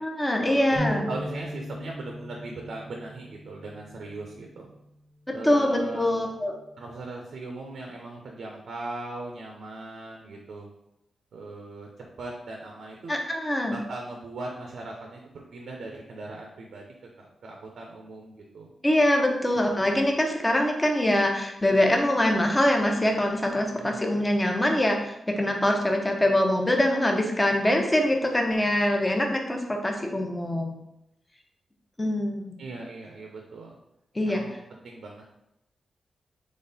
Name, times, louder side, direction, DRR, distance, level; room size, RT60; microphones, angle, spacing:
voice 1, 0.0-1.1 5.4-6.5 13.1-13.8 18.8-30.8 32.0-32.6 34.1-34.4, left 1 dB, 15° left, 2 dB, 0.8 m, -24 dB
sound 1, 0.8-5.0 5.5-5.7 6.6-7.0, equal, 55° left, 1.2 m, -38 dB
voice 2, 0.9-4.7 5.3-6.3 6.8-10.7 11.3-13.2 13.7-15.2 15.5-16.9 17.2-18.7 19.6-19.8 23.8-24.0 32.6-33.8 34.2-35.2, right 2 dB, 80° right, 1 dB, 0.7 m, -39 dB
4.1 x 3.2 x 4.0 m, 0.84 s
cardioid pair, 90°, 0 cm